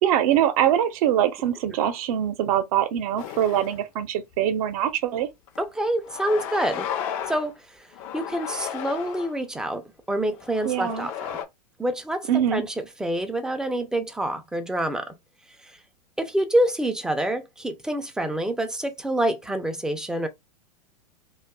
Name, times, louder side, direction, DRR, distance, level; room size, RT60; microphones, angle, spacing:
voice 1, 0.0-5.3 10.6-11.1 12.3-12.6, right 10 dB, 60° right, 0.7 m, -23 dB
sound 1, 3.2-3.9 4.3-4.4 5.5-5.6 6.1-7.5 7.9-9.4 10.2-11.5, left 9 dB, 55° left, 0.5 m, -34 dB
voice 2, 5.6-6.9 7.3-7.9 8.1-11.3 11.8-12.7 13.0-15.1 15.6-15.8 16.2-20.3, right 1 dB, 5° right, 0.4 m, -27 dB
2.5 x 2.3 x 2.3 m
hypercardioid pair, 105°, 21 cm